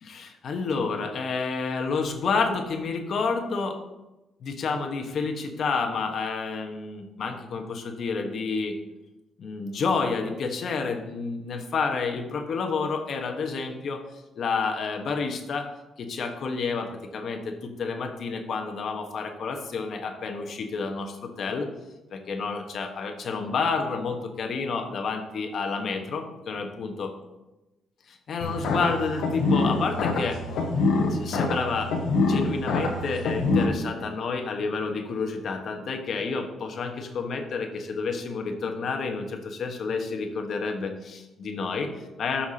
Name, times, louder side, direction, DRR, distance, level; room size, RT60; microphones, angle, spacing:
voice 1, 0.0-3.8 4.4-8.8 9.4-14.0 14.3-15.7 16.0-21.7 22.1-27.1 28.3-30.4 31.1-42.5, left 4 dB, 60° left, 4 dB, 1.2 m, -29 dB
sound 1, 28.4-33.7, left 3 dB, 85° left, 1.2 m, -25 dB
12.5 x 5.8 x 2.9 m, 1.0 s
cardioid pair, 90°, 0 cm